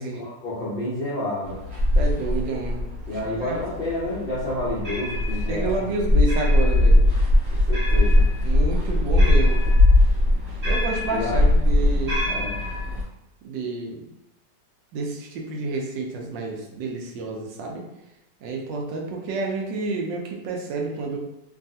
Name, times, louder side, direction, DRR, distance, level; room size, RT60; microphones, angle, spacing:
voice 1, 0.1-1.6 3.1-5.8 7.7-8.3 11.1-11.5 12.3-12.6, left 1 dB, 70° left, -7 dB, 0.5 m, -29 dB
sound 1, 1.5-13.0, left 1 dB, 50° right, 1.3 m, -20 dB
voice 2, 2.0-2.8 3.4-3.6 5.5-7.1 8.4-9.6 10.6-12.2 13.4-14.1 14.9-17.8 18.4-21.2, right 3 dB, 80° right, 0 dB, 1.3 m, -29 dB
3.2 x 2.3 x 2.6 m, 0.88 s
omnidirectional pair, 2.0 m